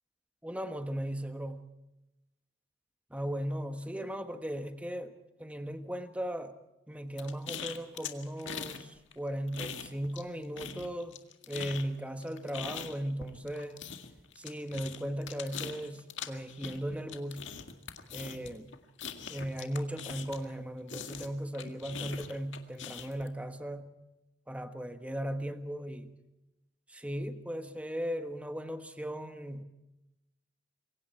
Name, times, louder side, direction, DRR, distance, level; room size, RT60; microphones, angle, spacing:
voice 1, 0.4-1.7 3.1-5.1 5.4-6.5 6.9-11.2 11.5-13.8 14.4-17.5 18.1-18.8 19.3-23.9 24.5-26.2 26.9-29.6, equal, 5° right, 7 dB, 1.4 m, -37 dB
sound 1, 7.2-8.8 9.1-10.3 10.6-20.5 20.9-23.3, left 7 dB, 75° left, 2.0 m, -42 dB
27.0 x 23.0 x 4.6 m, 0.94 s
head